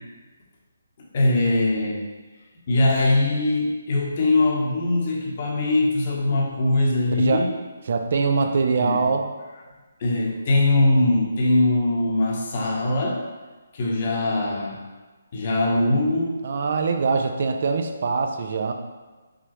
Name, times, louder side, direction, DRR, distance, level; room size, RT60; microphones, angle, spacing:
voice 1, 1.1-2.0 2.7-7.5 8.8-9.0 10.0-13.2 13.7-14.8 15.3-16.4, left 2 dB, 45° left, -2 dB, 1.0 m, -21 dB
voice 2, 7.9-9.3 16.4-18.7, right 4 dB, 55° right, 6 dB, 0.4 m, -23 dB
5.0 x 3.5 x 3.0 m, 1.3 s
figure-of-eight pair, 150°, 0 cm